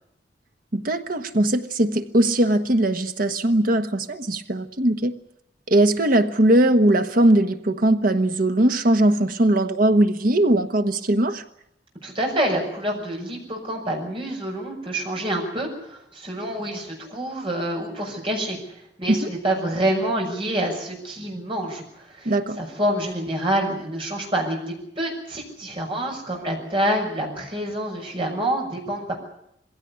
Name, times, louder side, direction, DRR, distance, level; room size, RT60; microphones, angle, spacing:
voice 1, 0.7-5.1 5.7-11.4 19.1-19.3 22.2-22.6, right 1 dB, 55° right, 8 dB, 1.3 m, -20 dB
voice 2, 12.0-18.6 19.0-29.1, right 1 dB, 30° right, 0 dB, 6.4 m, -27 dB
21.5 x 16.5 x 9.9 m, 0.77 s
head